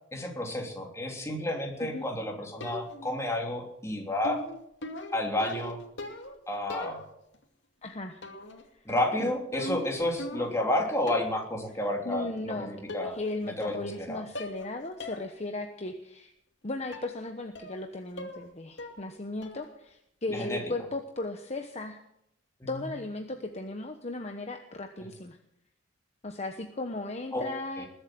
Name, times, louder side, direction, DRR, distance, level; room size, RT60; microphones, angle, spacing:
voice 1, 0.1-4.4 5.1-5.8 6.5-7.0 8.8-13.1 13.6-14.2 20.3-20.6 22.6-22.7 27.3-27.5 27.8-27.9, left 1 dB, 15° left, 1 dB, 3.2 m, -31 dB
sound 1, 2.6-3.2 4.2-6.4 6.7-7.4 8.2-8.6 8.9-10.7 11.1-11.4 12.4-12.5 12.9-13.4 13.6-14.0 14.3-14.7 15.0-15.2 15.6-15.7 16.9-17.1 17.5-17.9 18.2-18.5 18.8-19.1 19.4-19.8, left 1 dB, 75° left, 2.5 m, -40 dB
voice 2, 7.8-8.2 8.7-8.8 9.2-9.3 12.0-12.7 13.0-16.3 16.6-22.0 22.7-25.4 26.2-27.8, left 2 dB, 35° left, 5 dB, 1.1 m, -36 dB
21.0 x 8.2 x 7.7 m, 0.77 s
head